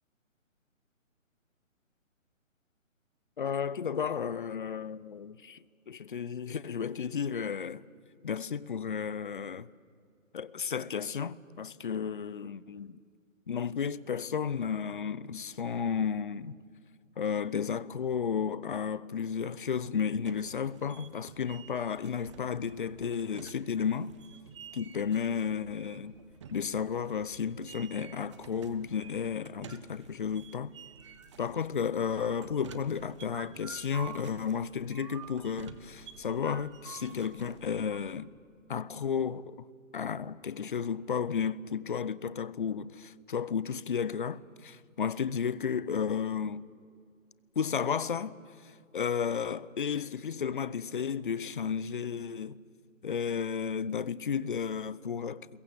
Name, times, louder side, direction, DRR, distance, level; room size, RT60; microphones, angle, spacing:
voice 1, 3.4-7.8 8.2-9.7 10.3-13.0 13.5-16.6 17.2-24.1 24.7-26.2 26.5-30.8 31.4-38.3 38.7-39.6 39.9-46.6 47.6-52.6 53.0-55.5, left 7 dB, 40° left, 0.6 m, -33 dB
sound 1, 20.2-38.0, right 7 dB, 20° right, 0.9 m, -50 dB
28.0 x 21.5 x 8.0 m
hypercardioid pair, 160°, 40 cm